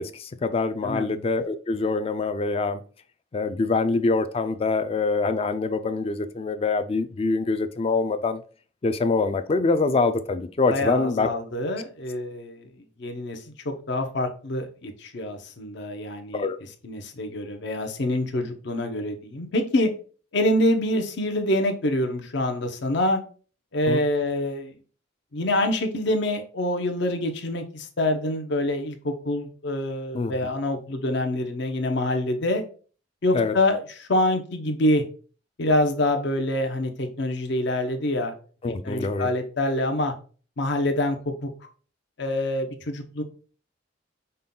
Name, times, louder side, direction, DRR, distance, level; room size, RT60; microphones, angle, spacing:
voice 1, 0.0-2.8 3.3-8.4 8.8-11.3 11.7-11.8 16.3-16.6 23.9-24.0 30.1-30.3 33.3-33.6 38.6-39.3, left 3 dB, 30° left, 0.3 m, -25 dB
voice 2, 10.7-12.7 13.0-16.5 16.8-19.9 20.3-23.2 23.7-24.7 25.3-32.6 33.2-35.0 35.6-38.3 38.8-40.1 40.6-41.5 42.2-43.2, left 1 dB, 60° left, 0.7 m, -26 dB
5.4 x 2.2 x 3.7 m
head